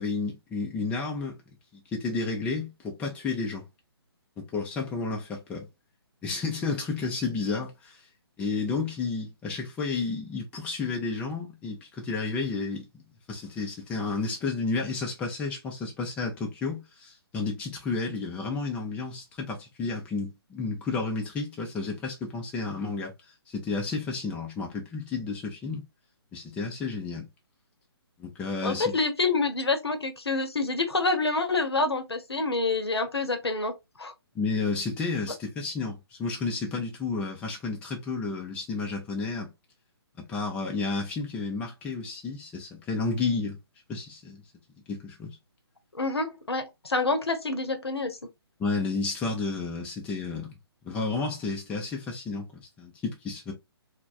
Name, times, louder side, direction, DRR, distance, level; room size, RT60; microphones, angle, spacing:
voice 1, 0.0-1.4 1.9-3.7 4.5-5.7 6.2-8.0 8.4-13.0 13.3-23.1 23.5-25.8 26.3-27.3 28.2-28.9 34.3-39.5 40.2-43.6 43.9-44.4 44.9-45.4 48.6-50.5 50.8-53.5, left 4 dB, 10° left, 0.5 m, -31 dB
voice 2, 28.6-34.1 45.9-48.2, left 3 dB, 75° left, 0.7 m, -27 dB
3.3 x 2.1 x 2.4 m
figure-of-eight pair, 135°, 13 cm